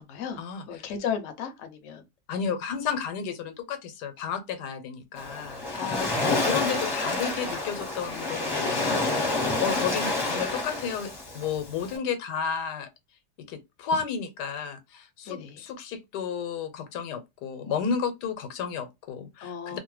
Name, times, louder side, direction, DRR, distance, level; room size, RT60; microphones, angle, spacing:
voice 1, 0.0-0.4 0.7-2.0 5.7-6.3 15.3-15.6 19.4-19.8, left 7 dB, 65° left, 0.8 m, -35 dB
voice 2, 2.3-5.6 6.2-12.9 13.4-19.8, left 6 dB, 85° left, 1.2 m, -32 dB
Waves surf, 5.2-12.0, left 2 dB, 25° left, 0.6 m, -29 dB
2.8 x 2.1 x 3.1 m
omnidirectional pair, 1.8 m